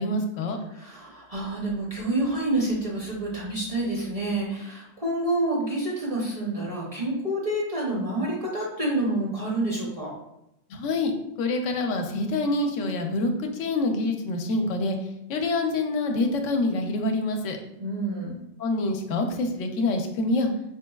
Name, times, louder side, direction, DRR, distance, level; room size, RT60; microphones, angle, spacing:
voice 1, 0.0-0.6 10.7-11.1 11.4-15.0 15.3-17.6 18.6-20.5, left 2 dB, 80° left, 4 dB, 0.9 m, -26 dB
voice 2, 0.7-10.2 17.8-18.4, right 1 dB, 40° right, -4 dB, 0.6 m, -28 dB
4.4 x 3.0 x 2.3 m, 0.83 s
omnidirectional pair, 1.3 m